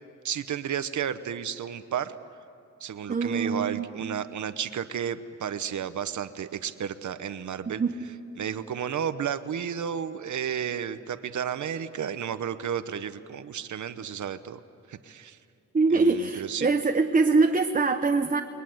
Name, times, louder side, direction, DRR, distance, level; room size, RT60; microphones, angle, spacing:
voice 1, 0.2-2.2 2.8-7.8 8.4-14.6 14.9-15.4 15.9-16.7, right 8 dB, 90° right, 11 dB, 1.0 m, -32 dB
voice 2, 3.1-3.9 7.8-7.9 15.7-18.4, right 3 dB, 30° right, 5 dB, 0.9 m, -23 dB
29.5 x 21.5 x 7.9 m, 2.7 s
wide cardioid pair, 170°, 29 cm